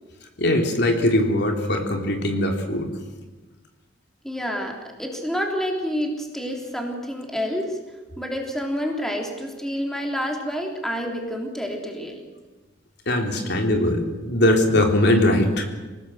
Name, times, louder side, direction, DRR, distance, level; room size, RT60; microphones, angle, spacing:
voice 1, 0.4-2.9 13.0-15.6, left 1 dB, 65° left, 3 dB, 3.4 m, -21 dB
voice 2, 4.2-7.8 8.2-12.3, equal, ahead, 1 dB, 3.5 m, -28 dB
27.0 x 18.5 x 7.9 m, 1.2 s
head